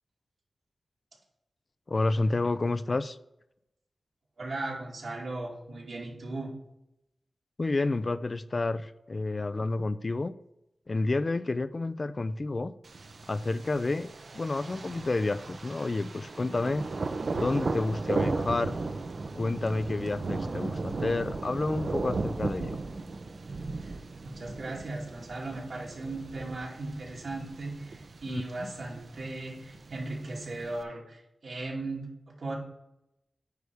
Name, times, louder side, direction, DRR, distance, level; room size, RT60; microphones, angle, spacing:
voice 1, 1.9-3.2 7.6-10.3 10.9-12.7 13.3-14.1 14.3-16.9 17.3-18.8 19.4-22.8 28.3-28.7, left 2 dB, 40° left, 14 dB, 0.4 m, -30 dB
voice 2, 4.4-6.5 23.8-23.9 24.2-32.5, right 2 dB, 75° right, -4 dB, 2.4 m, -37 dB
Thunder, 12.8-30.8, right 3 dB, 60° right, 0.7 m, -36 dB
9.3 x 3.5 x 6.4 m, 0.84 s
wide cardioid pair, 115°, 0 cm